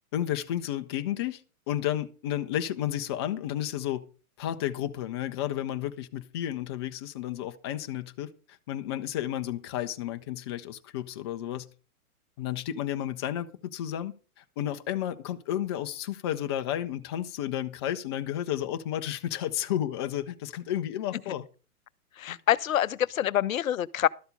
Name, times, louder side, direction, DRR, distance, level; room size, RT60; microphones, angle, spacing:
voice 1, 0.1-1.4 1.7-4.0 4.4-8.3 8.7-11.7 12.4-21.5 22.3-22.4, left 11 dB, 20° left, 0.4 m, -32 dB
voice 2, 22.2-24.1, left 11 dB, 65° left, 0.6 m, -26 dB
12.5 x 7.9 x 5.2 m
figure-of-eight pair, 120°, 44 cm